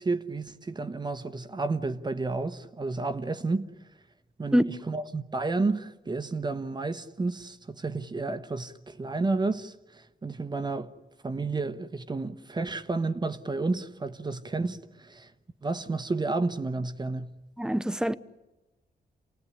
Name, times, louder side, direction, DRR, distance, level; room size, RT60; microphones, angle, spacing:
voice 1, 0.0-3.7 4.4-10.9 11.2-15.3 15.6-17.4, right 3 dB, 25° right, 1.1 m, -31 dB
voice 2, 17.6-18.1, equal, 5° right, 0.8 m, -24 dB
28.0 x 18.5 x 9.9 m
wide cardioid pair, 120°, 16 cm